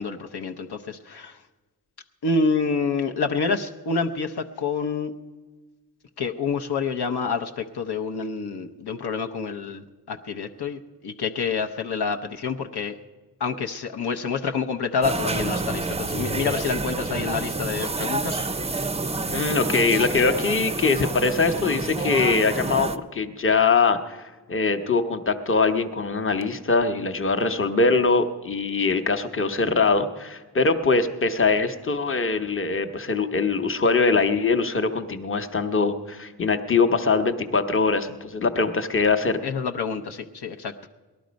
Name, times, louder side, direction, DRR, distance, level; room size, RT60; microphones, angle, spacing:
voice 1, 0.0-1.4 2.2-5.1 6.2-13.0 13.4-18.8 39.4-40.7, left 4 dB, 75° left, 4 dB, 0.8 m, -28 dB
sound 1, 15.0-23.0, right 3 dB, 15° right, 0.5 m, -28 dB
voice 2, 19.3-24.2 24.5-39.4, left 4 dB, 30° left, 7 dB, 0.9 m, -22 dB
18.5 x 11.5 x 5.2 m, 1.3 s
cardioid pair, 75°, 40 cm